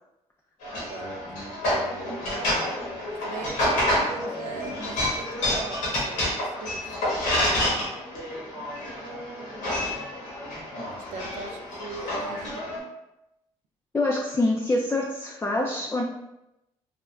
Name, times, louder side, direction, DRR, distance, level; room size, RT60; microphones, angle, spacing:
sound 1, 0.6-12.8, left 1 dB, 85° left, 1.1 m, -28 dB
voice 1, 3.1-6.9 11.1-12.8, right 4 dB, 75° right, 5 dB, 0.4 m, -40 dB
voice 2, 13.9-16.0, left 2 dB, 20° left, -1 dB, 0.4 m, -25 dB
3.4 x 2.1 x 2.3 m, 0.91 s
supercardioid pair, 65°, 13 cm